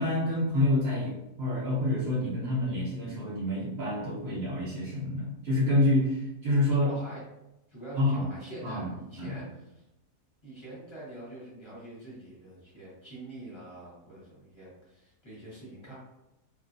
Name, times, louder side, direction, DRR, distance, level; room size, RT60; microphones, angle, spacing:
voice 1, 0.0-6.9 8.0-8.3 8.6-8.9 9.2-9.4, left 1 dB, 55° right, -5 dB, 0.8 m, -27 dB
voice 2, 6.8-7.2 7.7-9.4 10.4-16.0, right 1 dB, 20° left, -8 dB, 1.0 m, -45 dB
2.9 x 2.5 x 2.6 m, 0.93 s
omnidirectional pair, 1.7 m